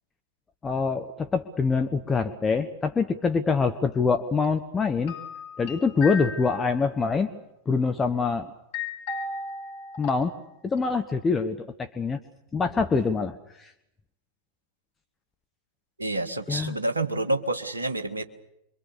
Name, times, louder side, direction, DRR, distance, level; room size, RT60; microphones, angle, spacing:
voice 1, 0.6-5.1 5.6-7.3 7.7-8.5 10.0-10.3 10.6-12.2 12.5-13.7 16.5-16.8, left 4 dB, 15° left, 7 dB, 1.2 m, -25 dB
sound 1, 5.1-6.9 8.7-10.5 10.8-10.9, left 4 dB, 45° left, 5.4 m, -36 dB
voice 2, 16.0-18.2, right 2 dB, 80° right, 7 dB, 1.7 m, -28 dB
26.5 x 23.5 x 7.0 m, 0.83 s
figure-of-eight pair, 90°, 0 cm